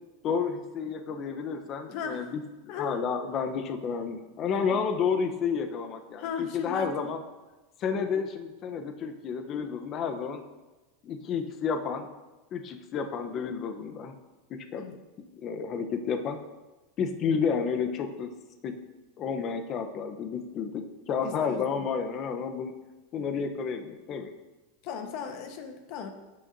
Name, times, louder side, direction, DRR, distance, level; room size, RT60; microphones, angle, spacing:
voice 1, 0.2-7.2 7.8-10.4 11.0-12.1 12.5-14.1 14.5-14.8 15.4-16.4 17.0-18.3 18.6-18.7 19.2-22.7 23.1-24.3, left 6 dB, 35° left, 6 dB, 0.8 m, -31 dB
voice 2, 1.9-2.3 2.7-3.0 4.6-4.8 6.2-7.1 14.7-14.9 21.2-21.8 24.8-26.1, left 6 dB, 55° left, 6 dB, 1.1 m, -37 dB
16.0 x 6.3 x 2.7 m, 1.1 s
supercardioid pair, 130°, 0 cm